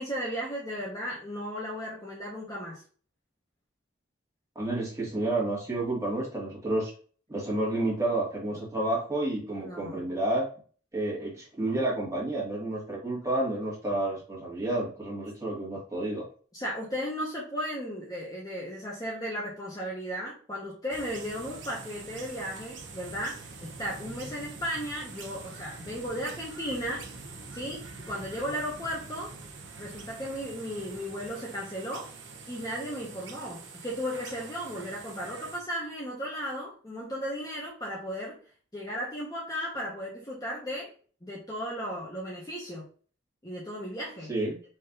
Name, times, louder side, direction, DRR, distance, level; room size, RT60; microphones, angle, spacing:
voice 1, 0.0-2.8 9.5-10.0 16.5-27.0 27.5-29.3 29.8-32.1 32.5-38.4 38.7-40.9 41.2-42.8 43.4-44.3, equal, 20° left, -4 dB, 1.1 m, -35 dB
voice 2, 4.6-6.9 7.3-10.5 10.9-16.3 44.3-44.6, right 2 dB, 15° right, -4 dB, 1.9 m, -30 dB
sound 1, 20.9-35.6, right 4 dB, 70° right, 1.0 m, -45 dB
4.4 x 3.0 x 3.9 m, 0.42 s
head